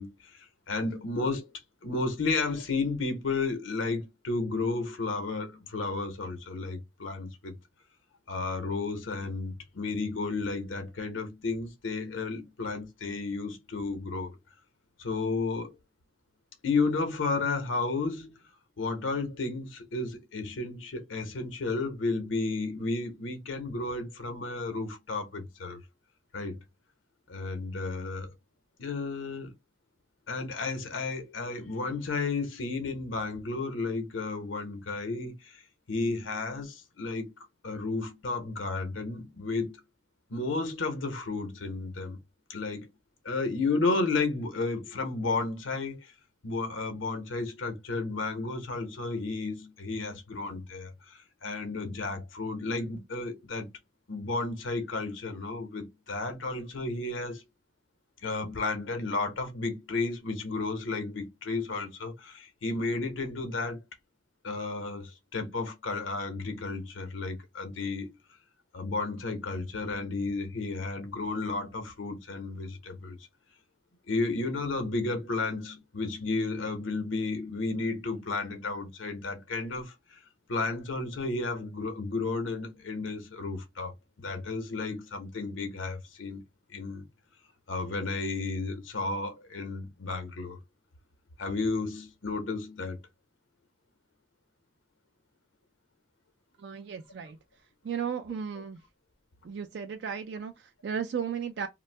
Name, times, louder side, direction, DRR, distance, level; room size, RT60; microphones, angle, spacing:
voice 1, 0.0-1.5 1.8-7.5 8.3-14.3 15.0-15.7 16.6-18.4 18.8-25.8 26.3-26.6 27.3-28.3 28.8-29.5 30.3-35.6 35.9-37.3 37.6-39.8 40.3-42.2 42.5-42.9 43.2-46.1 46.4-53.7 54.1-57.4 58.2-63.8 64.4-68.1 68.7-73.2 74.1-80.2 80.5-83.9 84.2-86.4 86.7-87.0 87.7-90.6 91.4-93.0, left 3 dB, 85° left, 0.9 m, -32 dB
voice 2, 96.6-97.4 97.8-98.8 99.4-101.7, right 7 dB, 60° right, 0.3 m, -35 dB
2.6 x 2.2 x 3.2 m
head